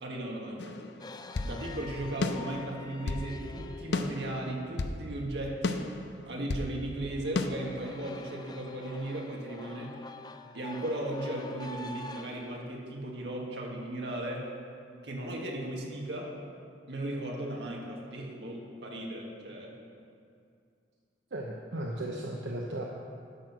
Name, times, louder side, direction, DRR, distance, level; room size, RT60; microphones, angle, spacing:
voice 1, 0.0-0.8 1.4-5.8 6.3-9.9 10.5-14.5 15.0-16.3 16.9-19.7, right 1 dB, 70° right, -1 dB, 1.8 m, -36 dB
sound 1, 0.6-1.6 2.2-3.3 3.9-5.0 5.6-6.7 7.4-7.5, left 3 dB, 70° left, 0.6 m, -33 dB
sound 2, 1.0-5.1 6.9-12.6, left 3 dB, 25° left, 0.4 m, -47 dB
voice 2, 21.3-22.9, right 1 dB, 90° right, -1 dB, 0.8 m, -35 dB
11.5 x 6.1 x 6.1 m, 2.4 s
head